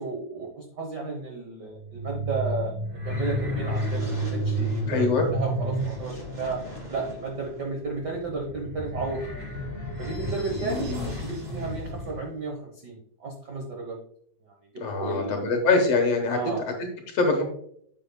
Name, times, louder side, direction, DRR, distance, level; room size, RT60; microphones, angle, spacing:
voice 1, 0.0-2.8 3.0-6.6 6.9-9.5 10.0-12.6 12.8-14.0 15.0-15.3 16.3-16.6, right 3 dB, 70° right, 0 dB, 0.9 m, -33 dB
sound 1, 1.7-12.2, equal, 15° right, 1.9 m, -31 dB
voice 2, 4.9-5.3 10.5-11.1 14.8-16.4 16.8-16.9 17.1-17.4, left 3 dB, 60° left, 3 dB, 2.0 m, -24 dB
9.6 x 7.5 x 2.2 m, 0.67 s
omnidirectional pair, 3.6 m